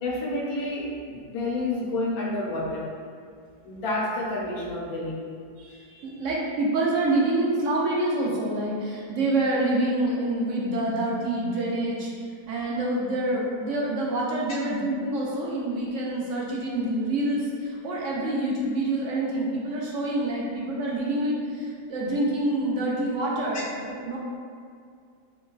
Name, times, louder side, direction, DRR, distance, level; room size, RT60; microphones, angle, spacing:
voice 1, 0.0-2.8 3.6-5.2, left 2 dB, 65° left, -4 dB, 1.1 m, -29 dB
voice 2, 5.6-24.2, right 1 dB, 70° right, -4 dB, 0.7 m, -27 dB
5.2 x 2.2 x 2.4 m, 2.2 s
omnidirectional pair, 1.9 m